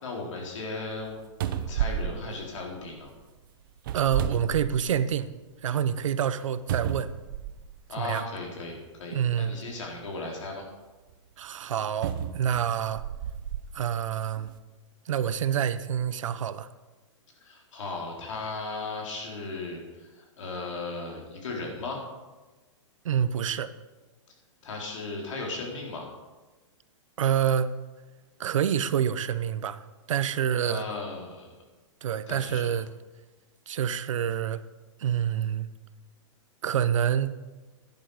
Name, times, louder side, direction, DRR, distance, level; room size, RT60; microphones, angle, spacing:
voice 1, 0.0-3.1 7.9-10.6 17.4-22.0 24.6-26.1 30.6-31.6 32.3-32.7, left 3 dB, 70° left, -1 dB, 4.1 m, -36 dB
sound 1, 1.0-1.1 1.4-3.1 3.8-5.2 5.6-5.7 6.7-7.8 8.7-8.9 12.0-13.7 14.4-14.5, right 9 dB, 40° right, 0.7 m, -32 dB
voice 2, 3.9-5.3 5.6-7.1 8.0-8.2 9.1-9.5 11.4-13.0 13.7-14.5 15.1-16.7 23.0-23.7 27.2-27.7 28.4-29.8 30.1-30.8 32.0-32.9 33.7-34.6 35.0-35.7 36.6-37.3, right 9 dB, 75° right, 14 dB, 0.8 m, -27 dB
11.5 x 10.5 x 5.0 m, 1.2 s
hypercardioid pair, 170°, 17 cm